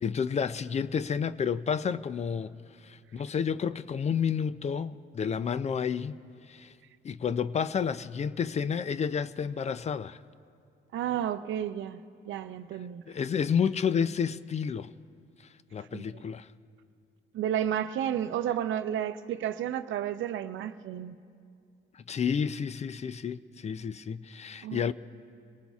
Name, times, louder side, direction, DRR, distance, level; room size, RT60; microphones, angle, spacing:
voice 1, 0.0-2.5 2.8-6.2 6.5-6.8 7.0-10.2 13.1-14.9 15.7-16.5 21.9-24.9, left 7 dB, 35° left, 0.4 m, -30 dB
voice 2, 10.9-13.0 15.9-16.0 17.3-21.2 24.6-24.8, right 10 dB, 75° right, 0.6 m, -32 dB
25.5 x 19.0 x 2.4 m
cardioid pair, 90°, 20 cm